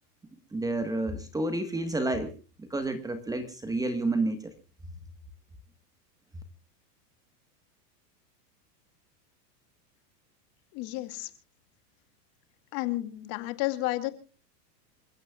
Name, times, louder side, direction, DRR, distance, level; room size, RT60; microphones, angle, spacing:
voice 1, 0.5-2.3 2.6-4.4, right 2 dB, 5° right, 9 dB, 1.3 m, -30 dB
voice 2, 10.7-11.3 12.7-14.1, left 18 dB, 45° left, 9 dB, 2.4 m, -31 dB
28.0 x 15.5 x 2.3 m, 0.33 s
supercardioid pair, 150°, 48 cm